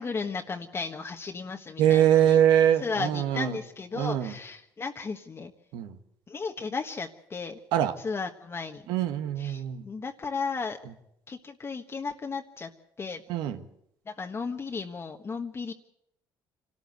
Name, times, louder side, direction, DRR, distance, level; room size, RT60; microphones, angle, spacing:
voice 1, 0.0-2.4 2.8-5.5 6.3-7.6 8.0-8.8 9.4-10.8 11.3-12.7 13.0-13.2 14.1-15.7, left 4 dB, 35° left, 3 dB, 1.4 m, -34 dB
voice 2, 1.8-3.6 4.0-4.3 5.7-6.0 7.7-7.9 8.9-9.8 13.3-13.6, right 10 dB, 85° right, 8 dB, 1.5 m, -23 dB
25.5 x 13.0 x 7.9 m, 0.78 s
cardioid pair, 90°, 8 cm